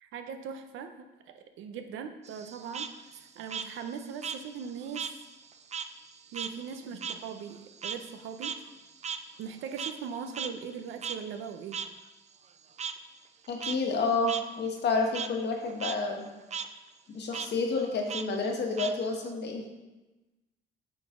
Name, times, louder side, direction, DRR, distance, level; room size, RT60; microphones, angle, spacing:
voice 1, 0.0-5.1 6.3-8.6 9.4-11.9, right 6 dB, 85° right, 7 dB, 0.6 m, -40 dB
Frog, 2.2-5.2 5.5-10.1 10.3-10.5 11.0-11.2 11.7-11.9 12.8-12.9 13.4-13.8 14.3-14.4 14.8-15.3 15.7-15.9 16.2-16.7 17.3-17.5 18.1-19.3, right 7 dB, 35° right, 0.4 m, -37 dB
voice 2, 13.5-16.3 17.1-19.6, left 3 dB, 60° left, 2 dB, 1.3 m, -29 dB
8.7 x 4.0 x 3.7 m, 1.1 s
cardioid pair, 90°, 20 cm